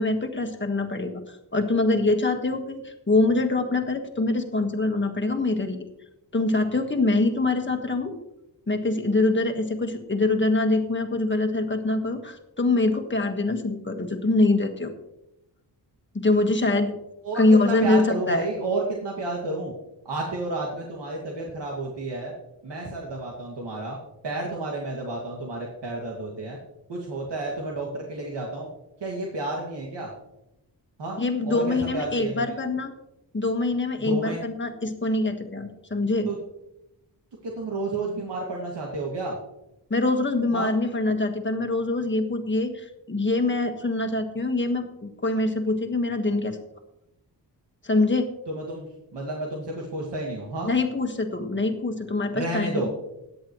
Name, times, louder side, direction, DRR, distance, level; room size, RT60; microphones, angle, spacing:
voice 1, 0.0-5.8 6.3-8.1 8.7-14.9 16.1-16.9 17.3-18.5 31.2-32.9 33.3-36.3 39.9-46.6 47.8-48.3 50.6-52.9, left 2 dB, 25° left, 5 dB, 1.6 m, -24 dB
voice 2, 17.2-19.7 20.0-22.3 22.6-24.0 24.2-26.6 26.9-28.7 29.0-30.1 31.0-32.4 34.0-34.4 36.2-36.4 37.4-39.4 40.5-40.7 48.5-50.7 52.3-52.9, right 2 dB, 80° right, -2 dB, 2.3 m, -31 dB
17.0 x 10.5 x 3.1 m, 0.88 s
wide cardioid pair, 125°, 41 cm